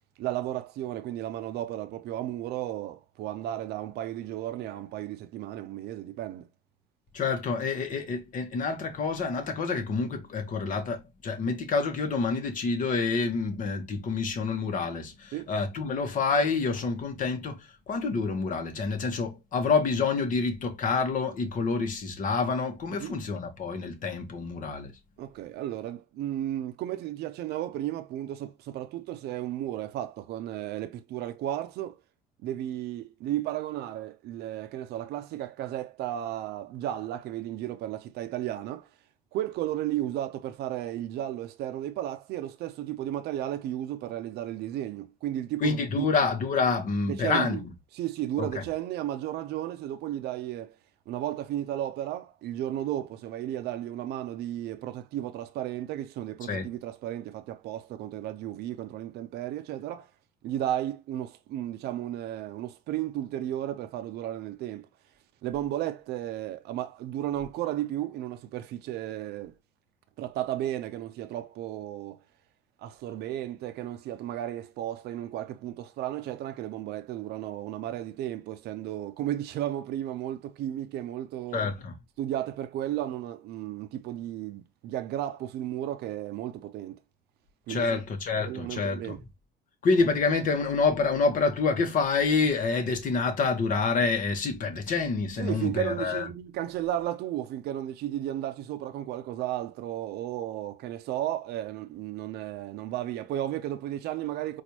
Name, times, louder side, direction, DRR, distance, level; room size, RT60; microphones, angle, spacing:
voice 1, 0.2-6.5 15.3-15.5 23.0-23.1 25.2-32.0 32.4-38.9 39.3-46.1 47.1-47.6 47.9-50.8 51.1-60.1 60.4-64.9 65.4-69.5 70.2-72.2 72.8-81.7 82.2-87.0 87.7-88.0 88.4-89.2 95.4-104.6, right 12 dB, 75° right, 0.5 m, -34 dB
voice 2, 7.1-24.9 45.6-47.7 48.4-48.6 56.5-56.7 81.5-81.9 87.7-89.2 89.8-96.3, left 4 dB, 50° left, 1.0 m, -27 dB
4.2 x 2.4 x 2.9 m
cardioid pair, 110°, 17 cm